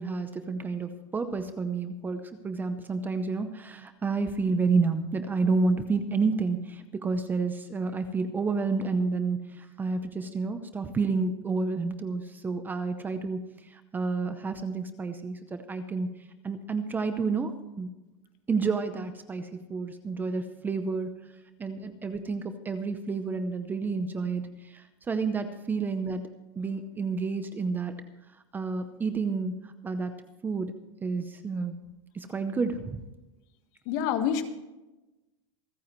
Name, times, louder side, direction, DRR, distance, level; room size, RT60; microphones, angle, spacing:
voice 1, 0.0-16.1 16.4-17.5 17.8-17.9 18.5-21.1 21.6-26.3 26.6-27.9 28.5-30.1 30.4-30.7 31.0-31.8 32.1-33.0, right 4 dB, 10° right, 9 dB, 0.7 m, -30 dB
voice 2, 33.9-34.4, left 8 dB, 45° left, 8 dB, 1.6 m, -26 dB
27.5 x 9.3 x 3.1 m, 1.0 s
supercardioid pair, 160°, 15 cm